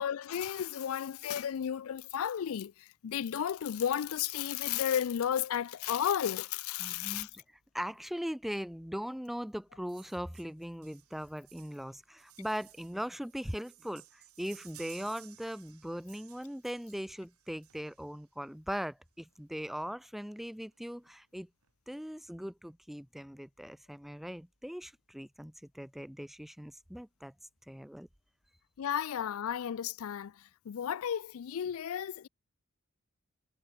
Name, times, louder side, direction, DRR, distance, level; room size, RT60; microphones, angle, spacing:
voice 1, 0.0-7.3 28.8-30.3 30.7-32.3, left 9 dB, 70° left, 0.4 m, -33 dB
voice 2, 6.8-7.4 7.7-21.5 21.9-27.3 27.7-28.1, equal, ahead, 0.4 m, -40 dB
sound 1, 9.9-18.2 19.3-19.4 19.7-19.8 20.0-20.2 20.5-21.1 21.6-21.7, right 15 dB, 85° right, 3.7 m, -58 dB
head